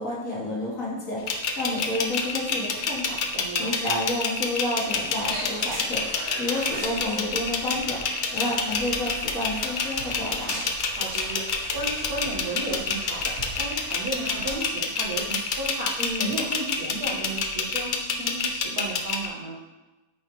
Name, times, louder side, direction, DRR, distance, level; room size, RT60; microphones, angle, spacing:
voice 1, 0.0-10.6 16.0-16.4, left 1 dB, 60° left, -4 dB, 1.8 m, -30 dB
sound 1, 1.3-19.3, left 5 dB, 85° left, 0.4 m, -27 dB
voice 2, 3.3-3.7 10.9-19.6, right 2 dB, 80° right, -5 dB, 1.9 m, -34 dB
sound 2, 4.8-14.6, right 1 dB, 40° right, 1.8 m, -39 dB
8.5 x 3.9 x 3.0 m, 1.1 s
omnidirectional pair, 1.6 m